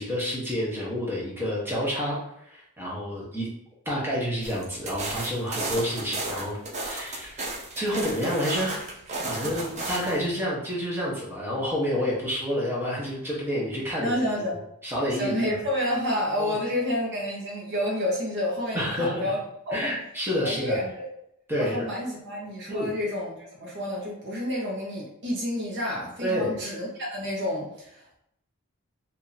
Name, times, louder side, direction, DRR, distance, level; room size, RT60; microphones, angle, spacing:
voice 1, 0.0-3.5 3.8-7.4 7.8-8.9 9.3-14.1 14.8-15.3 16.4-16.5 18.7-19.3 19.7-20.8 21.5-21.9 22.7-22.9 26.2-26.6, equal, 10° right, -5 dB, 1.1 m, -29 dB
sound 1, 4.4-10.2, right 2 dB, 35° right, 0.7 m, -33 dB
voice 2, 14.0-14.6 15.2-19.4 19.7-19.9 20.4-21.0 21.5-28.2, left 1 dB, 55° right, -4 dB, 1.2 m, -29 dB
2.9 x 2.9 x 4.0 m, 0.78 s
head